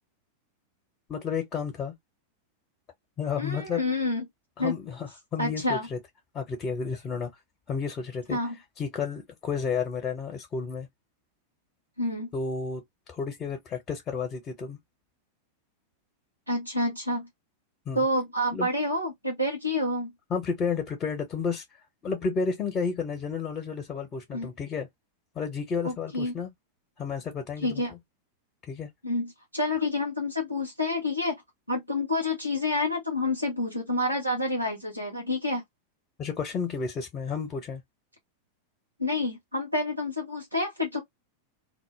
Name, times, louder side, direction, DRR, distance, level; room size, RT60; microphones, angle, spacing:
voice 1, 1.1-1.9 3.2-3.8 4.6-6.0 6.3-7.4 7.7-8.4 8.8-10.9 12.3-12.8 13.1-14.8 17.9-18.0 18.5-18.7 20.3-21.6 22.0-24.9 25.3-26.5 27.0-27.8 28.7-28.9 36.2-37.8, left 5 dB, 25° left, 0.7 m, -31 dB
voice 2, 3.4-4.2 4.6-4.7 5.4-5.9 8.3-8.6 12.0-12.3 16.5-17.3 17.9-20.1 24.3-24.5 25.8-26.3 27.6-27.9 29.0-31.4 31.7-35.6 39.0-41.0, left 2 dB, 85° right, 0.8 m, -28 dB
2.1 x 2.1 x 3.1 m
figure-of-eight pair, 90°, 0 cm